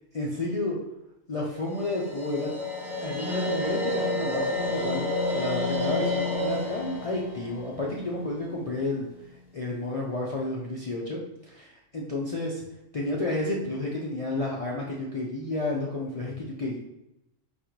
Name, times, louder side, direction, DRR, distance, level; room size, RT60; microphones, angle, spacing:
voice 1, 0.1-0.8 1.3-2.5 3.0-5.0 5.3-9.1 9.5-12.6 12.9-16.8, left 2 dB, 55° left, -4 dB, 0.4 m, -31 dB
sound 1, 1.7-8.8, left 1 dB, ahead, 1.0 m, -30 dB
4.0 x 2.6 x 4.5 m, 0.86 s
omnidirectional pair, 1.4 m